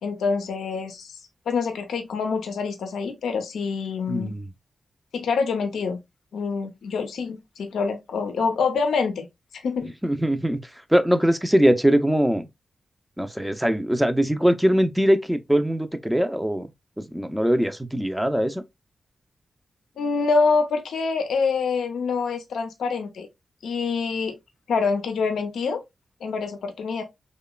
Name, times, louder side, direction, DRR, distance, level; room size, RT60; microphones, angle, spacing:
voice 1, 0.0-1.2 1.5-4.3 5.1-6.0 6.3-9.3 9.5-9.9 20.0-23.3 23.6-24.4 24.7-25.8 26.2-27.0, left 4 dB, 90° left, 0.4 m, -26 dB
voice 2, 4.1-4.5 10.0-10.6 10.9-12.4 13.2-16.7 17.0-18.6, equal, 5° right, 0.5 m, -21 dB
2.9 x 2.1 x 2.2 m
cardioid pair, 50°, 0 cm